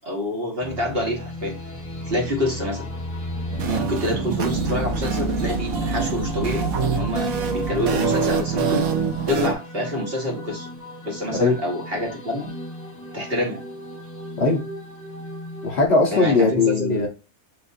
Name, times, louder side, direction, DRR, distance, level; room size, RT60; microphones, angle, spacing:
voice 1, 0.0-1.5 2.1-2.9 3.6-8.9 9.3-10.7 11.1-12.5 13.1-13.6 16.1-17.1, left 1 dB, 45° right, 1.2 m, -27 dB
sound 1, 0.6-15.9, left 1 dB, 15° left, 1.2 m, -36 dB
sound 2, 3.5-9.5, right 4 dB, 70° right, 1.2 m, -25 dB
voice 2, 15.6-17.1, left 3 dB, 50° left, 1.0 m, -19 dB
6.8 x 2.5 x 2.6 m
omnidirectional pair, 1.6 m